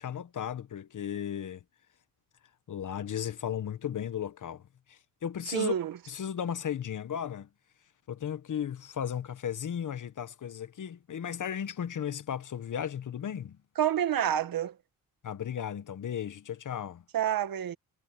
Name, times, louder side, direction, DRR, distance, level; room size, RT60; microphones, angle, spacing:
voice 1, 0.0-1.6 2.7-4.6 4.9-5.7 6.1-7.5 8.1-13.6 15.2-17.0, left 9 dB, 60° left, 1.4 m, -35 dB
voice 2, 5.5-5.9 13.8-14.7 17.1-17.7, right 10 dB, 80° right, 1.9 m, -28 dB
cardioid pair, 95°, 34 cm